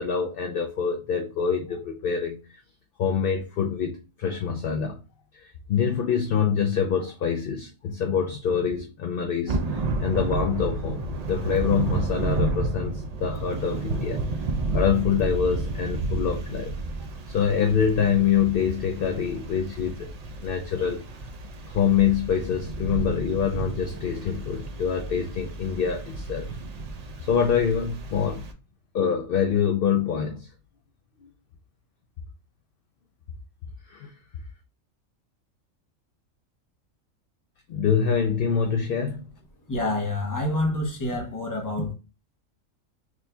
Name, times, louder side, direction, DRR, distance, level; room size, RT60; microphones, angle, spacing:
voice 1, 0.0-2.4 3.0-5.0 5.3-14.2 14.7-16.7 17.3-20.1 20.4-21.0 21.7-26.5 27.3-28.5 28.9-30.5 33.9-34.1 37.7-39.3, left 7 dB, 60° left, 0.6 m, -25 dB
Thunder / Rain, 9.5-28.5, right 2 dB, 65° right, 0.4 m, -31 dB
voice 2, 39.7-41.9, left 1 dB, 15° left, 0.8 m, -27 dB
6.1 x 2.7 x 2.2 m
omnidirectional pair, 1.4 m